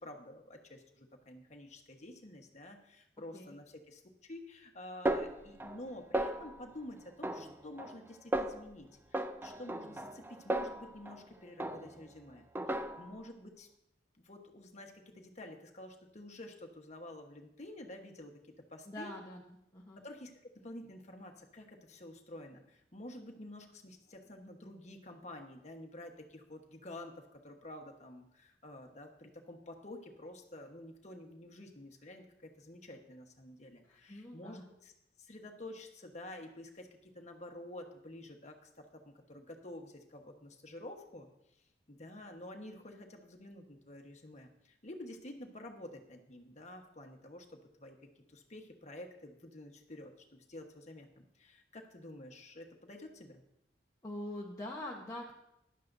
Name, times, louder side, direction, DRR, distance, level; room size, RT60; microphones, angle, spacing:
voice 1, 0.0-12.4 12.8-13.7 14.2-18.4 18.7-19.1 20.0-34.9 35.2-41.3 41.9-53.4, left 1 dB, 40° left, 3 dB, 1.3 m, -50 dB
Snare drum, 5.1-5.9 6.1-6.7 7.2-8.0 8.3-8.7 9.1-11.2 11.6-12.1 12.6-13.2, right 1 dB, 10° right, 0.4 m, -36 dB
voice 2, 18.9-19.4 19.7-20.0 33.8-34.6 54.0-55.3, left 1 dB, 20° left, -3 dB, 1.1 m, -44 dB
15.0 x 11.0 x 2.7 m, 0.83 s
head